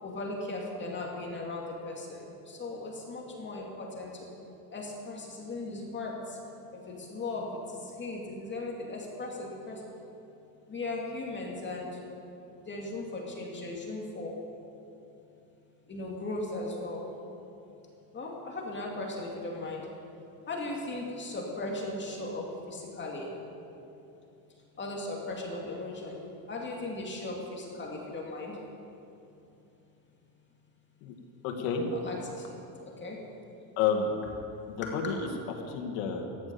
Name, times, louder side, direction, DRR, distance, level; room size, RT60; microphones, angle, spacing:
voice 1, 0.0-4.3 4.7-6.4 6.7-9.8 10.7-12.0 12.6-14.4 15.9-17.1 18.1-19.9 20.5-23.3 24.8-26.2 26.5-28.6 31.9-33.2 34.8-34.9, left 2 dB, 25° left, -2 dB, 2.4 m, -37 dB
voice 2, 31.4-31.9 33.8-34.1 34.7-35.3 35.7-36.3, left 6 dB, 85° left, 2 dB, 2.2 m, -30 dB
14.0 x 11.0 x 7.0 m, 2.8 s
supercardioid pair, 120°, 43 cm